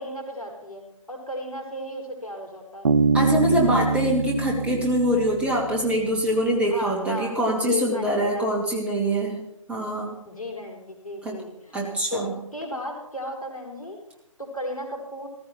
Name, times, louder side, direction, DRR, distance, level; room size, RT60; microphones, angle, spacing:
voice 1, 0.0-2.9 6.6-7.3 7.7-8.5 10.2-14.0 14.4-15.3, left 1 dB, 85° left, 2 dB, 4.5 m, -34 dB
Bass guitar, 2.8-6.3, right 4 dB, 65° right, 0.9 m, -24 dB
voice 2, 3.1-10.2 11.2-11.4 11.7-12.3, equal, 5° right, -3 dB, 2.5 m, -24 dB
16.5 x 14.5 x 4.5 m, 0.84 s
figure-of-eight pair, 135°, 18 cm